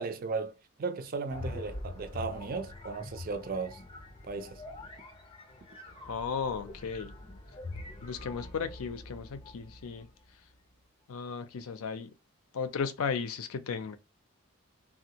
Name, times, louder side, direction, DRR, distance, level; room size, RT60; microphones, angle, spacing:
voice 1, 0.0-3.8 4.2-4.6, right 4 dB, 40° right, 0.4 m, -36 dB
sound 1, 1.3-10.1, left 2 dB, 25° left, 0.5 m, -44 dB
voice 2, 6.1-7.1 8.0-10.1 11.1-12.1 12.5-14.0, left 6 dB, 80° left, 0.5 m, -35 dB
3.4 x 2.3 x 2.8 m
head